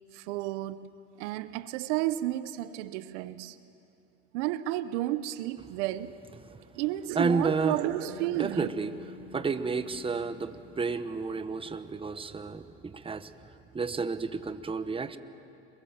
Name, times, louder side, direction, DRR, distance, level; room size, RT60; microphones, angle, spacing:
voice 1, 0.1-0.9 1.2-3.6 4.3-6.1 6.7-8.7, right 15 dB, 75° right, 1.0 m, -32 dB
voice 2, 7.1-7.8 8.4-8.9 9.3-13.3 13.7-15.2, right 4 dB, 15° right, 1.1 m, -31 dB
Bass guitar, 8.1-12.2, left 5 dB, 80° left, 2.2 m, -50 dB
29.5 x 22.5 x 7.4 m
supercardioid pair, 95°, 36 cm